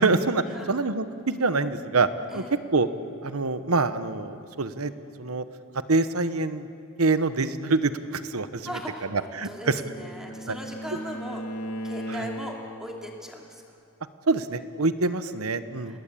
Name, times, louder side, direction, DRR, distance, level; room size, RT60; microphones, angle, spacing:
voice 1, 0.0-2.1 2.3-2.4 2.7-2.9 3.2-4.9 5.2-5.4 5.9-6.7 7.0-8.7 9.1-9.7 10.5-10.6 14.3-16.0, right 3 dB, 80° right, 12 dB, 1.1 m, -25 dB
voice 2, 8.6-13.6 15.8-16.0, equal, 5° right, 0 dB, 2.9 m, -39 dB
Bowed string instrument, 9.0-12.9, equal, 70° left, 4.2 m, -37 dB
28.5 x 19.5 x 8.6 m, 2.5 s
head